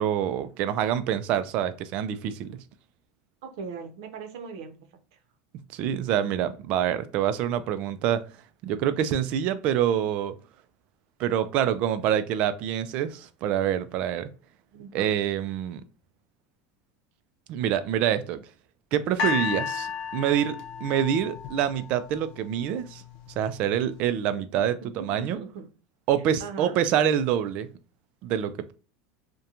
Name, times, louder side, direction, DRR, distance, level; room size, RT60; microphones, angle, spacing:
voice 1, 0.0-2.6 5.7-8.2 8.6-10.3 11.2-14.3 14.9-15.8 17.5-18.4 18.9-23.0 23.4-25.4 26.1-27.7 28.2-28.7, right 10 dB, 50° right, 0.3 m, -26 dB
voice 2, 3.4-5.2 14.7-15.2 24.8-25.7 26.4-26.8, right 5 dB, 80° right, 0.6 m, -40 dB
sound 1, 19.2-22.4 23.1-23.2, left 6 dB, 50° left, 0.6 m, -32 dB
2.8 x 2.2 x 2.4 m
supercardioid pair, 145°, 3 cm